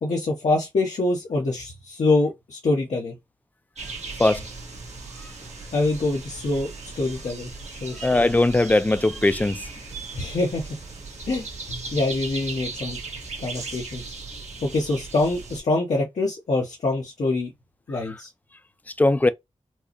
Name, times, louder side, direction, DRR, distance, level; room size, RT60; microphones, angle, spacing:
voice 1, 0.0-3.2 5.7-6.7 7.0-7.5 7.8-8.1 10.1-10.7 11.3-13.0 13.4-14.0 14.6-17.5 17.9-18.3, left 2 dB, 80° left, 0.9 m, -25 dB
sound 1, 3.8-15.6, right 3 dB, 70° right, 1.2 m, -37 dB
voice 2, 8.0-9.6 19.0-19.3, left 2 dB, 15° left, 0.3 m, -19 dB
4.5 x 2.0 x 2.9 m
wide cardioid pair, 90°, 12 cm